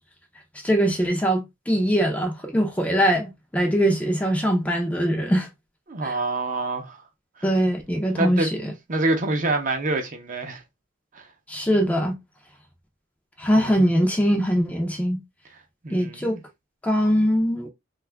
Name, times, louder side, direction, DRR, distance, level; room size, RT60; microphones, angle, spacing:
voice 1, 0.6-5.5 6.0-6.2 7.4-8.7 11.5-12.2 13.4-15.2 15.9-16.4 16.8-17.7, equal, 5° left, 0.5 m, -22 dB
voice 2, 5.9-7.0 8.2-10.6 11.1-11.3 13.6-13.9 15.8-16.4, right 2 dB, 40° right, 0.6 m, -27 dB
2.6 x 2.4 x 3.3 m
head